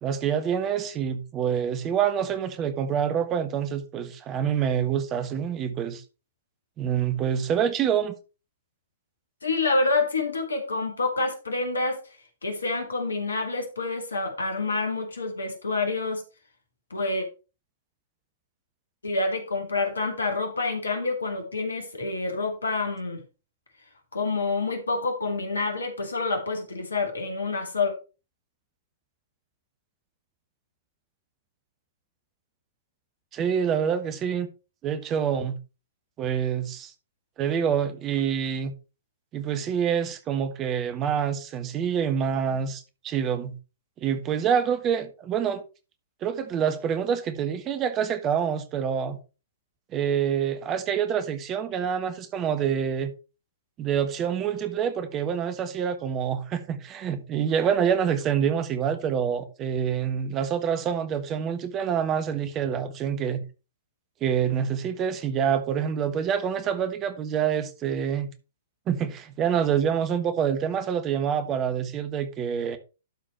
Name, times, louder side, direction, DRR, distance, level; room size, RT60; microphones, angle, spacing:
voice 1, 0.0-6.0 6.8-8.1 33.3-34.5 34.8-35.6 36.2-36.9 37.4-38.7 39.3-43.5 44.0-45.6 46.2-49.2 49.9-53.1 53.8-63.4 64.2-68.3 68.9-72.8, right 8 dB, 25° right, 1.2 m, -26 dB
voice 2, 9.4-12.0 12.4-16.2 16.9-17.3 19.0-23.2 24.1-27.9, left 3 dB, 75° left, 2.4 m, -27 dB
12.0 x 4.4 x 4.4 m
figure-of-eight pair, 110°, 0 cm